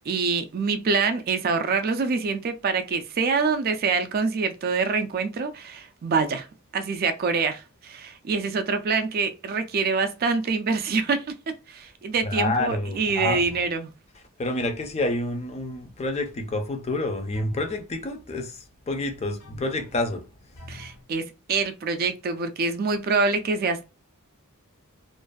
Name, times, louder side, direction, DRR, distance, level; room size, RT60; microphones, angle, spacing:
voice 1, 0.1-6.5 6.7-13.9 20.7-23.9, right 4 dB, 45° right, 0.3 m, -25 dB
voice 2, 12.2-13.4 14.4-20.2, left 2 dB, 30° left, 0.4 m, -28 dB
sound 1, 13.3-13.8 17.3-17.9 19.4-20.1 20.6-21.1, left 2 dB, 70° left, 0.6 m, -45 dB
2.5 x 2.3 x 2.2 m
head